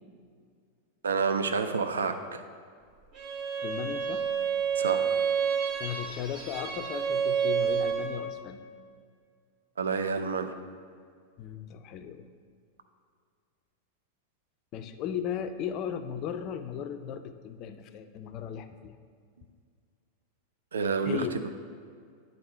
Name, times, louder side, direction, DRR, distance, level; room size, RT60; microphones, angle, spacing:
voice 1, 1.0-2.4 4.8-5.2 9.8-10.5 20.7-21.3, right 5 dB, 70° right, 8 dB, 0.4 m, -29 dB
Bowed string instrument, 3.1-8.3, right 7 dB, 40° right, 1.0 m, -29 dB
voice 2, 3.6-4.3 5.8-8.7 11.4-12.3 14.7-19.0 21.1-21.3, left 8 dB, 40° left, 10 dB, 0.4 m, -36 dB
9.5 x 3.9 x 4.3 m, 2.2 s
figure-of-eight pair, 90°, 0 cm